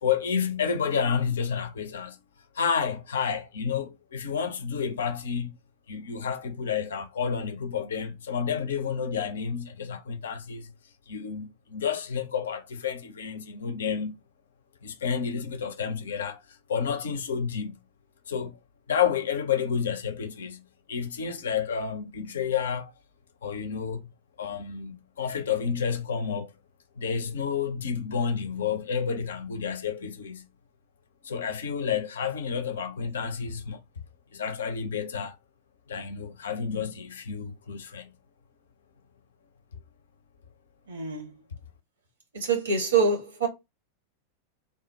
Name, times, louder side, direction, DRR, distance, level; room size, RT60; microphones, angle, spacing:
voice 1, 0.0-2.2 2.5-5.6 5.9-10.7 11.1-14.1 14.8-16.4 16.7-17.8 18.3-18.6 18.9-20.6 20.9-22.9 23.4-24.1 24.4-26.5 27.0-30.5 31.2-33.8 34.3-35.4 35.9-38.1, left 7 dB, 65° left, 0.5 m, -30 dB
voice 2, 40.9-41.3 42.3-43.5, right 4 dB, 70° right, 1.1 m, -25 dB
3.4 x 2.0 x 2.7 m
figure-of-eight pair, 90°, 0 cm